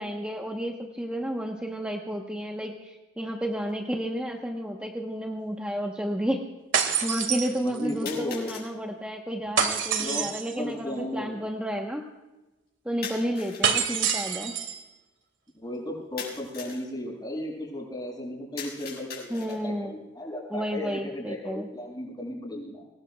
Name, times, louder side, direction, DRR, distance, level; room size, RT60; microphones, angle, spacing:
voice 1, 0.0-6.4 7.0-12.0 12.8-14.5 19.3-19.9 20.5-21.7, equal, 5° right, 0 dB, 1.0 m, -31 dB
sound 1, 3.7-3.8 4.8-4.9 8.1-8.7 13.0-13.9 16.2-16.9 18.6-19.7, left 6 dB, 55° left, 6.3 m, -40 dB
sound 2, 6.7-8.0 9.6-10.6 13.6-14.8, right 7 dB, 75° right, 2.0 m, -26 dB
voice 2, 7.4-8.5 10.0-10.3 10.6-11.5 15.5-22.8, left 1 dB, 20° left, -1 dB, 6.4 m, -35 dB
24.5 x 19.0 x 2.3 m, 1.1 s
head